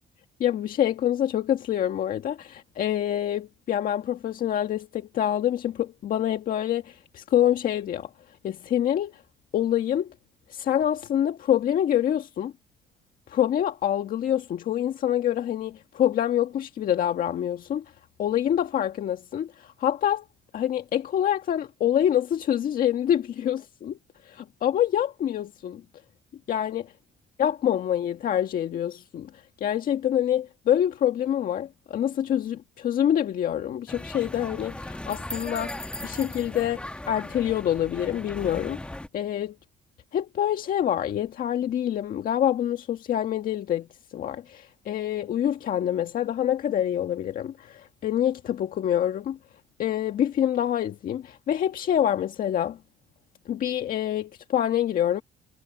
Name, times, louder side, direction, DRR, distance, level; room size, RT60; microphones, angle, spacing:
voice 1, 0.4-8.1 8.4-9.2 9.5-10.1 10.5-12.5 13.3-17.8 18.2-20.2 20.5-24.0 24.2-25.8 26.5-26.9 27.4-39.6 40.1-43.9 44.1-49.4 49.8-52.8 53.4-55.2, left 10 dB, 55° left, 1.7 m, -26 dB
sound 1, 33.9-39.1, left 1 dB, 5° left, 1.3 m, -37 dB
cardioid pair, 110°, 17 cm